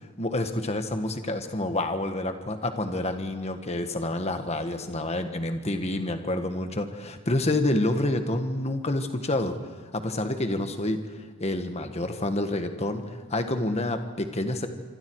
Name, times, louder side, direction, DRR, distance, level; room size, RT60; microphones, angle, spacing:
voice 1, 0.2-9.6 9.9-14.7, left 1 dB, 30° left, 7 dB, 1.5 m, -28 dB
26.5 x 25.0 x 4.8 m, 1.4 s
head